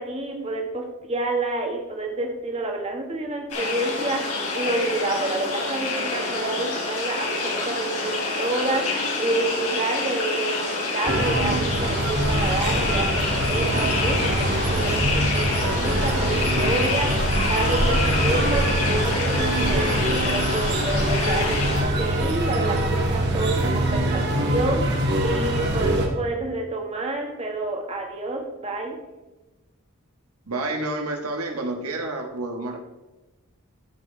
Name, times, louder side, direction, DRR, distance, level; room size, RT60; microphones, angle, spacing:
voice 1, 0.0-8.1 8.4-28.9, right 2 dB, 30° right, 1 dB, 1.5 m, -29 dB
sound 1, 3.5-21.8, left 3 dB, 90° left, 3.7 m, -27 dB
sound 2, 11.0-26.1, right 1 dB, 50° right, 1.6 m, -24 dB
voice 2, 30.5-32.8, right 2 dB, 85° right, 3 dB, 1.4 m, -29 dB
14.0 x 7.8 x 3.3 m, 1.1 s
head